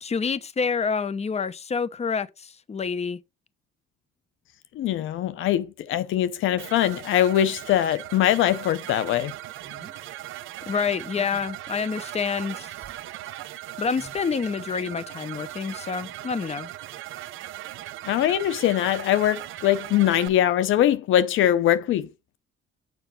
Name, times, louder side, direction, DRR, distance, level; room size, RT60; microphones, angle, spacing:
voice 1, 0.0-3.2 10.7-12.7 13.8-16.7, left 5 dB, 35° left, 0.8 m, -28 dB
voice 2, 4.7-9.3 18.1-22.1, left 11 dB, 80° left, 0.7 m, -22 dB
sound 1, 6.6-20.3, right 14 dB, 90° right, 0.7 m, -39 dB
sound 2, 9.6-10.0 11.1-11.6 12.6-13.0 13.9-14.2, right 5 dB, 55° right, 1.7 m, -48 dB
7.0 x 5.4 x 5.8 m
cardioid pair, 90°, 20 cm